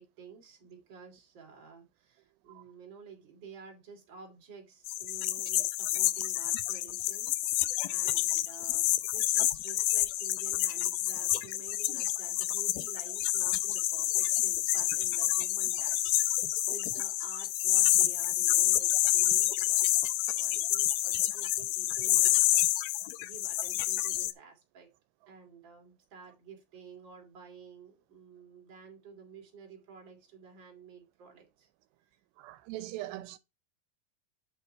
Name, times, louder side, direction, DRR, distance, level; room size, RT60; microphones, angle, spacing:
voice 1, 0.0-22.7 23.2-24.9 25.3-31.7, right 6 dB, 30° right, 2.9 m, -51 dB
sound 1, 4.9-24.3, left 16 dB, 80° left, 2.2 m, -28 dB
voice 2, 32.4-33.4, right 16 dB, 85° right, 2.8 m, -41 dB
8.4 x 5.7 x 4.2 m
omnidirectional pair, 4.7 m